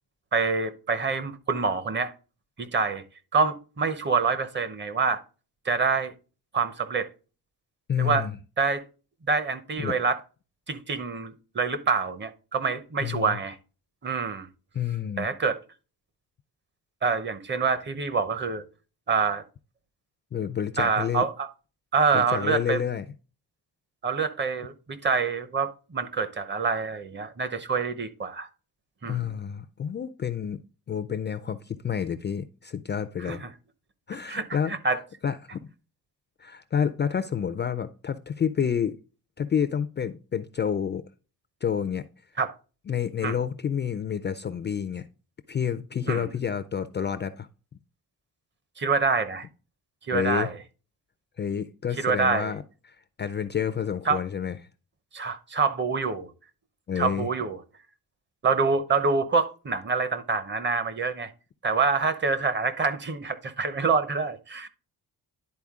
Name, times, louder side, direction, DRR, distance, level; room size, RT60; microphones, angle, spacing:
voice 1, 0.3-2.1 2.6-3.0 3.3-5.2 5.6-6.1 6.5-7.1 8.0-8.3 8.6-8.8 9.3-10.2 10.7-13.6 14.0-14.5 15.2-15.6 17.0-18.6 19.1-19.4 20.8-21.5 21.9-22.8 24.0-28.5 29.0-29.3 33.3-33.5 34.3-35.0 42.4-42.5 43.2-43.3 46.1-46.3 48.8-49.5 50.1-50.5 52.0-52.5 54.1-54.2 55.1-56.3 57.0-57.6 58.4-61.3 61.6-64.7, right 4 dB, 30° right, 0.8 m, -26 dB
voice 2, 7.9-8.4 9.8-10.0 13.0-13.4 14.7-15.3 20.3-21.2 22.1-23.0 29.0-30.6 30.9-33.4 34.1-34.7 35.2-35.7 36.4-39.0 39.4-41.0 41.6-42.0 42.9-45.1 45.5-47.5 50.1-50.5 51.4-52.6 52.9-54.6 56.9-57.3, left 8 dB, 30° left, 0.4 m, -29 dB
10.5 x 4.2 x 3.6 m
wide cardioid pair, 165°, 37 cm